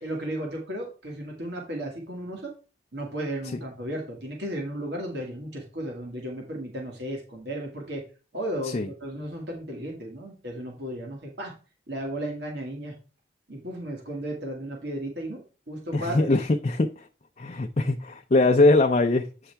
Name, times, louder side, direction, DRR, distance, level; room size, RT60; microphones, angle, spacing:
voice 1, 0.0-2.5 2.9-8.0 8.3-11.5 11.9-12.9 13.5-16.4, right 1 dB, 65° right, 2.1 m, -34 dB
voice 2, 15.9-16.9 17.4-19.2, left 2 dB, 40° left, 0.5 m, -21 dB
8.3 x 5.6 x 3.4 m
head